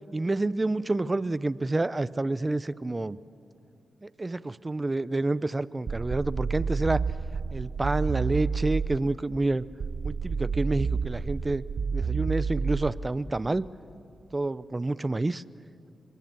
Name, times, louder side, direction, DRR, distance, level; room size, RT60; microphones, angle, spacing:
voice 1, 0.1-3.2 4.0-7.0 7.5-9.6 10.0-11.6 11.9-13.6 14.3-15.4, right 2 dB, 30° right, 17 dB, 0.7 m, -28 dB
sound 1, 5.9-9.1 9.8-13.1, right 5 dB, 65° right, 0.9 m, -30 dB
26.5 x 23.0 x 7.6 m, 2.6 s
supercardioid pair, 45°, 0 cm